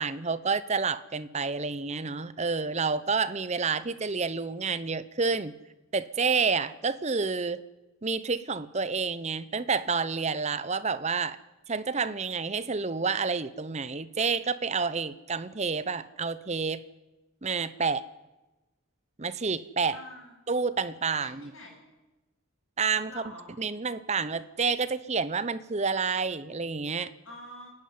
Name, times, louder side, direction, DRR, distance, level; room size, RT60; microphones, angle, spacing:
voice 1, 0.0-5.5 5.9-7.6 8.0-11.4 11.7-16.8 17.4-18.0 19.2-20.0 20.5-21.5 22.8-23.2 23.6-27.1, right 5 dB, 30° right, 15 dB, 0.7 m, -29 dB
voice 2, 19.9-20.3 21.2-21.8 23.1-23.4 27.2-27.7, left 1 dB, 60° left, 0 dB, 7.8 m, -46 dB
28.5 x 10.5 x 9.6 m, 1.1 s
head